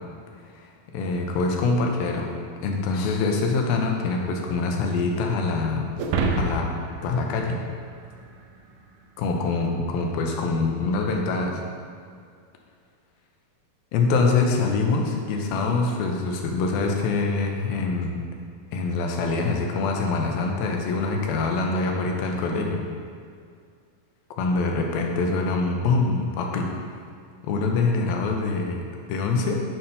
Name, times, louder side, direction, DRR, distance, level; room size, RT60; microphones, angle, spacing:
voice 1, 0.9-2.3 2.6-5.9 6.4-6.7 7.0-7.6 9.2-11.6 13.9-18.2 18.7-22.8 24.4-26.7 27.4-29.6, left 3 dB, 85° left, 1 dB, 2.7 m, -24 dB
sound 1, 6.0-8.5, right 3 dB, 75° right, 2.1 m, -28 dB
9.4 x 4.4 x 5.2 m, 2.3 s
omnidirectional pair, 4.2 m